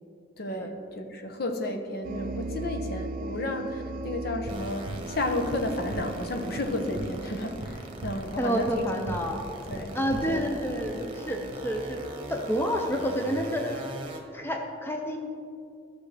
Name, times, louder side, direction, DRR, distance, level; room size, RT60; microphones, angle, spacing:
voice 1, 0.4-8.9 9.7-10.0 10.3-10.5, left 1 dB, 55° left, 5 dB, 0.9 m, -32 dB
sound 1, 2.0-9.4, right 2 dB, 50° right, 0.4 m, -38 dB
sound 2, 4.4-10.7, right 2 dB, 80° right, 0.7 m, -40 dB
sound 3, 4.5-14.2, right 1 dB, 25° right, 1.0 m, -41 dB
voice 2, 8.4-9.4 9.9-12.0 12.3-14.0 14.3-15.2, equal, 10° left, 2 dB, 0.6 m, -29 dB
14.0 x 6.3 x 3.3 m, 2.4 s
head